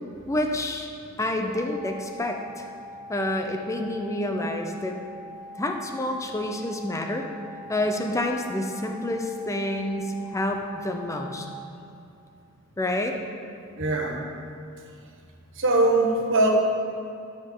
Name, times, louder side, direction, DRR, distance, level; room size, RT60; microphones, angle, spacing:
voice 1, 0.3-0.9 1.2-2.6 3.1-5.0 5.6-7.2 7.7-11.5 12.8-13.2, left 1 dB, 15° left, 3 dB, 0.6 m, -28 dB
sound 1, 1.5-11.5, left 1 dB, 45° right, 0.8 m, -43 dB
voice 2, 13.8-14.2 15.6-16.5, right 2 dB, 60° right, 0 dB, 1.1 m, -21 dB
12.0 x 6.5 x 3.8 m, 2.5 s
head